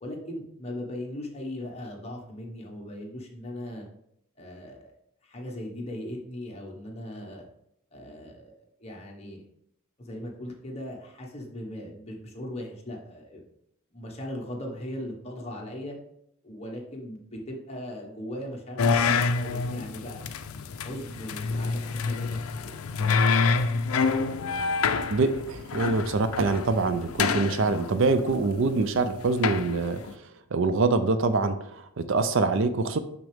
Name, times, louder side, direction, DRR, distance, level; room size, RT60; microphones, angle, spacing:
voice 1, 0.0-3.9 4.4-4.9 5.2-7.4 7.9-9.4 10.0-13.4 13.9-16.0 16.4-20.2 20.8-22.7, left 1 dB, 30° left, -1 dB, 1.3 m, -38 dB
sound 1, 18.8-30.1, left 4 dB, 80° left, 0.5 m, -27 dB
voice 2, 25.1-33.0, right 3 dB, 60° right, 10 dB, 0.5 m, -25 dB
6.2 x 5.9 x 3.5 m, 0.75 s
head